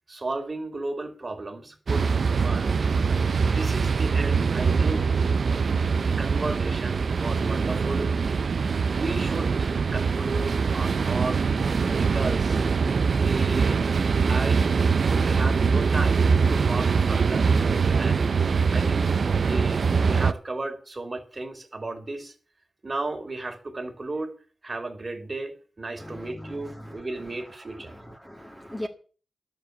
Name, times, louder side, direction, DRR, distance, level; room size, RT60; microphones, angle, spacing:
voice 1, 0.1-2.9 3.5-5.2 5.9-8.1 8.9-11.4 12.0-12.6 13.1-13.9 14.3-14.7 15.3-17.5 18.0-22.3 22.8-24.4 24.6-27.9, right 2 dB, 35° right, 3.1 m, -34 dB
sound 1, 1.9-20.3, right 5 dB, 65° right, 0.6 m, -23 dB
voice 2, 26.0-27.0 27.9-28.9, left 1 dB, 5° left, 1.8 m, -39 dB
12.0 x 7.0 x 8.1 m
wide cardioid pair, 85°, 0 cm